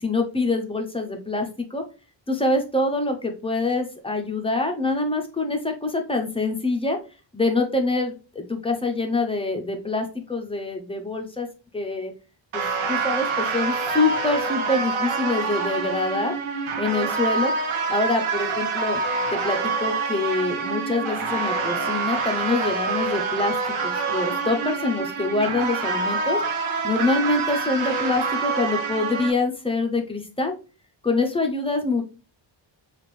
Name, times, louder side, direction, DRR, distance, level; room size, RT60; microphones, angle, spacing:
voice 1, 0.0-1.8 2.3-7.0 7.3-11.5 11.7-12.1 12.5-16.3 16.8-17.5 17.9-19.0 19.3-23.6 23.8-26.4 26.8-30.5 31.0-32.0, left 2 dB, 10° left, 4 dB, 0.5 m, -25 dB
sound 1, 12.5-29.3, right 4 dB, 90° right, 1.0 m, -26 dB
5.1 x 2.5 x 3.1 m, 0.34 s
wide cardioid pair, 180°, 47 cm